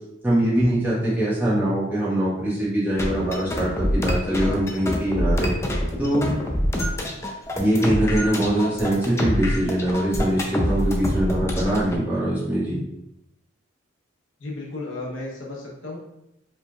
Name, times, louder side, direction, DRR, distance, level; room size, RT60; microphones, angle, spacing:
voice 1, 0.2-5.5 6.0-6.3 7.6-12.8, right 1 dB, 10° right, -10 dB, 1.4 m, -23 dB
sound 1, 2.9-12.0, equal, 15° left, 0.4 m, -25 dB
voice 2, 14.4-16.0, left 2 dB, 80° left, -2 dB, 0.9 m, -34 dB
4.7 x 3.2 x 2.3 m, 0.88 s
head